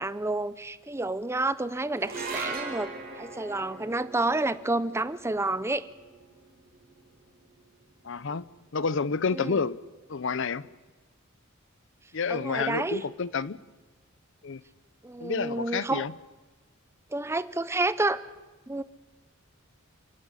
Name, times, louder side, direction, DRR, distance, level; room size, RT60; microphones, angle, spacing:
voice 1, 0.0-5.9 9.3-9.6 12.3-13.0 15.0-16.1 17.1-18.2 18.7-18.8, right 2 dB, 15° right, 0.6 m, -29 dB
sound 1, 1.9-8.4, right 3 dB, 45° right, 5.2 m, -40 dB
voice 2, 8.0-8.4 8.7-9.8 10.1-10.7 12.1-13.6 14.4-14.6 15.2-16.1, left 5 dB, 65° left, 0.7 m, -29 dB
29.0 x 12.0 x 9.8 m
head